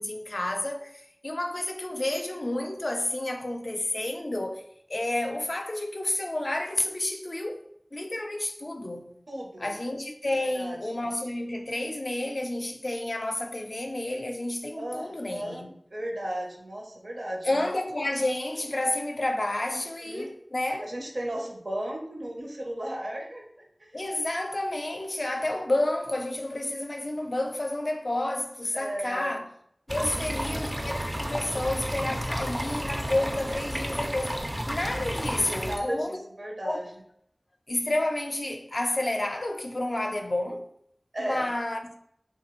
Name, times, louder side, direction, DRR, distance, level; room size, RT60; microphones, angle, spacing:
voice 1, 0.0-4.6 4.9-7.7 7.9-9.1 9.6-15.7 17.4-20.8 23.9-29.4 29.9-34.4 34.7-36.2 36.6-36.9 37.7-40.6 41.2-41.9, left 1 dB, 60° left, 0.4 m, -30 dB
voice 2, 9.3-9.8 10.4-11.1 14.8-17.7 19.7-20.3 20.8-23.4 23.8-24.0 28.7-29.4 30.1-30.6 35.6-36.8 41.1-41.5, right 1 dB, 75° right, 0.7 m, -35 dB
sound 1, 29.9-35.8, equal, 20° right, 0.3 m, -32 dB
3.1 x 2.2 x 2.9 m
wide cardioid pair, 45°, 0 cm